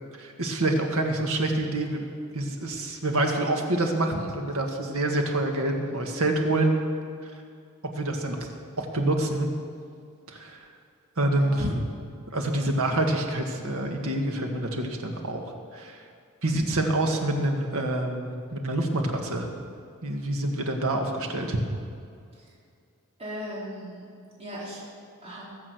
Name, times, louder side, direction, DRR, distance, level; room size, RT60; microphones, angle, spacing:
voice 1, 0.2-2.1 2.3-6.7 7.8-8.5 8.8-9.5 10.3-10.6 11.2-11.8 12.3-16.0 16.4-19.5 20.0-21.6, right 1 dB, 75° right, 2 dB, 1.8 m, -27 dB
voice 2, 11.3-11.7 16.5-16.8 23.2-24.1 24.4-24.8 25.2-25.4, equal, 30° right, -7 dB, 3.8 m, -38 dB
21.0 x 7.6 x 6.3 m, 2.3 s
head